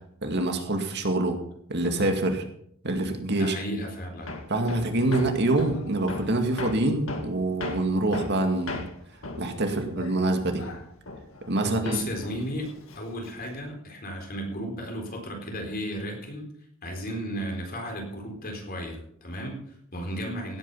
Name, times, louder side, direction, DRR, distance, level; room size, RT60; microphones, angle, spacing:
voice 1, 0.2-1.4 1.7-2.4 2.8-3.6 4.5-8.8 9.4-10.6 11.5-12.0, right 2 dB, 55° right, 4 dB, 2.1 m, -25 dB
voice 2, 3.3-4.3 11.6-16.5 16.8-20.6, equal, 45° left, 2 dB, 4.1 m, -34 dB
Hammer, 4.3-11.6 11.9-13.6, left 2 dB, 75° left, 2.0 m, -37 dB
17.0 x 9.1 x 5.6 m, 0.69 s
head